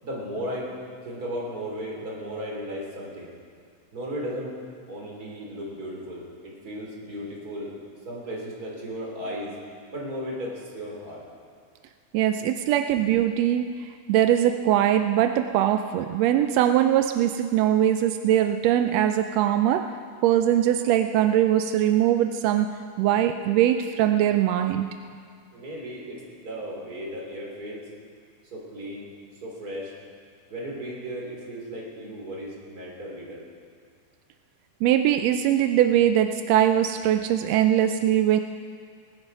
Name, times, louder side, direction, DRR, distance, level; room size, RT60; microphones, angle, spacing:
voice 1, 0.0-0.7 1.0-3.3 3.9-4.6 4.9-9.6 9.9-11.2 25.5-27.8 28.5-29.1 29.4-29.9 30.5-33.4, equal, 30° right, -4 dB, 3.5 m, -35 dB
voice 2, 12.1-13.7 14.1-19.9 20.2-22.7 23.0-24.9 34.8-38.4, right 11 dB, 85° right, 7 dB, 1.5 m, -21 dB
19.0 x 10.5 x 5.3 m, 2.1 s
omnidirectional pair, 3.5 m